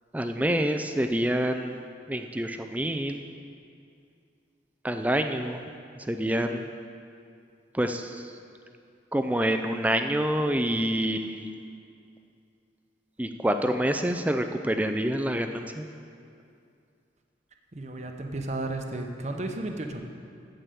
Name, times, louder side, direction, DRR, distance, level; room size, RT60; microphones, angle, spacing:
voice 1, 0.1-1.8 2.1-3.2 4.8-5.6 6.0-6.6 7.7-8.3 9.1-11.5 13.2-15.9, right 1 dB, 10° right, 6 dB, 0.4 m, -27 dB
voice 2, 17.7-20.0, right 2 dB, 40° right, 4 dB, 0.8 m, -33 dB
9.0 x 8.0 x 6.9 m, 2.4 s
head